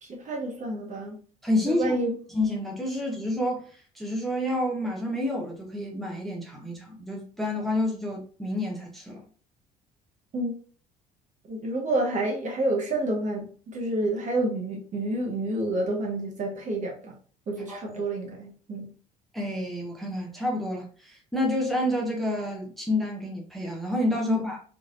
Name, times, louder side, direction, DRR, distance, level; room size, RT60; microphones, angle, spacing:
voice 1, 0.0-1.2 1.7-2.1 10.3-10.5 11.5-17.1 17.5-18.9 24.2-24.5, right 1 dB, 35° right, 0.9 m, -29 dB
voice 2, 1.4-2.0 2.3-3.7 3.9-9.2 17.7-18.0 19.3-24.6, left 1 dB, ahead, 0.7 m, -29 dB
3.2 x 2.4 x 2.4 m
figure-of-eight pair, 55°, 21 cm